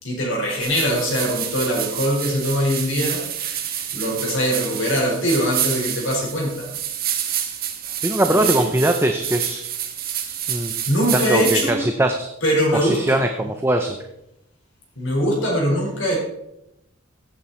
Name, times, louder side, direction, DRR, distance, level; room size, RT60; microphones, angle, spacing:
voice 1, 0.0-3.3 3.9-6.7 8.3-8.7 10.9-11.8 12.4-13.2 14.9-16.2, equal, 65° left, -1 dB, 5.0 m, -22 dB
sound 1, 0.6-11.7, right 10 dB, 45° right, 1.6 m, -28 dB
voice 2, 8.0-9.6 10.5-10.7 11.1-12.3 12.7-14.0, right 1 dB, 10° right, 5 dB, 0.7 m, -21 dB
16.0 x 8.5 x 4.4 m, 0.86 s
head